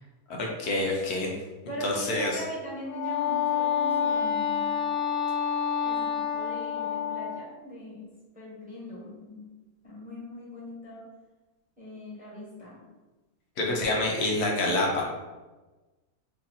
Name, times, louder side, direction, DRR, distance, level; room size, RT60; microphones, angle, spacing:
voice 1, 0.3-1.3 1.8-2.4 13.6-15.0, left 2 dB, 90° left, -1 dB, 1.3 m, -27 dB
voice 2, 1.7-5.0 5.8-9.5 9.8-11.1 11.8-12.8, equal, 5° right, -7 dB, 1.0 m, -40 dB
Wind instrument woodwind instrument, 2.8-7.5, left 8 dB, 70° left, 1.1 m, -28 dB
3.2 x 2.8 x 3.9 m, 1.2 s
omnidirectional pair, 1.6 m